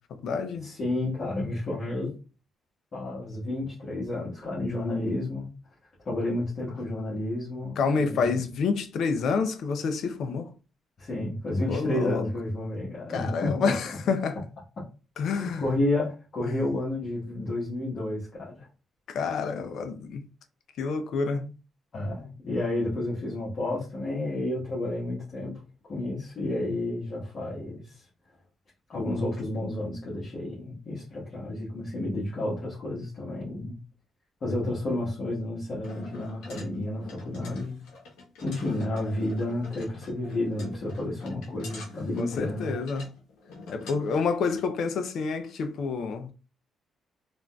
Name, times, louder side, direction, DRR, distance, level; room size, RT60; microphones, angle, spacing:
voice 1, 0.1-0.7 7.8-10.5 11.7-12.3 13.1-14.4 15.2-15.8 16.5-16.6 19.1-20.2 20.8-21.5 42.2-43.1 43.7-46.3, left 5 dB, 70° left, 0.5 m, -28 dB
voice 2, 0.6-2.1 2.9-5.5 6.0-8.4 11.0-13.7 15.4-18.7 21.9-25.6 25.9-28.1 28.9-33.8 34.4-37.8 38.4-42.7, left 1 dB, 50° left, 1.3 m, -31 dB
sound 1, 35.8-44.6, left 3 dB, 90° left, 0.9 m, -46 dB
3.6 x 2.5 x 2.2 m
cardioid pair, 90°, 0 cm